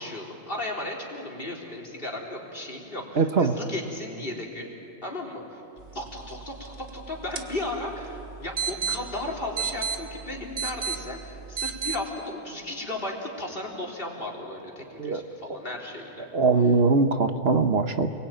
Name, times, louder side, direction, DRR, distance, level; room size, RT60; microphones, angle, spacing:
voice 1, 0.0-4.7 5.0-5.6 5.9-16.3, left 2 dB, 55° left, -1 dB, 4.1 m, -35 dB
voice 2, 3.1-3.5 15.0-15.2 16.3-18.1, right 4 dB, 65° right, 8 dB, 1.4 m, -21 dB
sound 1, 5.8-12.0, right 6 dB, 85° right, 1.8 m, -34 dB
29.0 x 21.5 x 9.2 m, 2.7 s
omnidirectional pair, 1.2 m